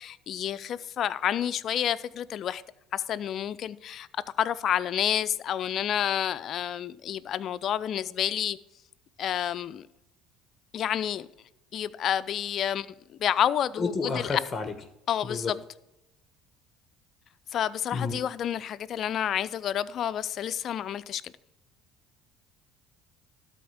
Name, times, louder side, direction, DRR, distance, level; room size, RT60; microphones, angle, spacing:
voice 1, 0.0-2.6 2.9-8.6 9.2-9.9 10.7-11.3 11.7-12.9 13.2-14.4 15.1-15.6 17.5-21.3, left 10 dB, 55° left, 0.5 m, -29 dB
voice 2, 13.8-14.7 15.2-15.5 17.9-18.2, left 4 dB, 30° left, 1.1 m, -30 dB
12.5 x 4.3 x 7.2 m
supercardioid pair, 80°, 0 cm